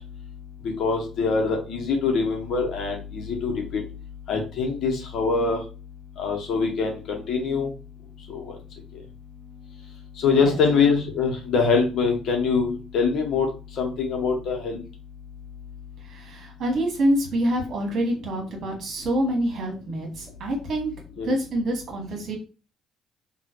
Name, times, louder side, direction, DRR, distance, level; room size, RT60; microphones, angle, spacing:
voice 1, 0.8-3.8 4.3-5.6 6.2-7.7 8.3-8.4 10.2-13.5 13.8-14.8 21.2-21.3, left 5 dB, 60° left, 2 dB, 1.2 m, -23 dB
voice 2, 16.0-20.9 21.2-22.4, right 1 dB, 55° right, 1 dB, 1.5 m, -26 dB
3.0 x 2.6 x 3.0 m, 0.32 s
hypercardioid pair, 50°, 0 cm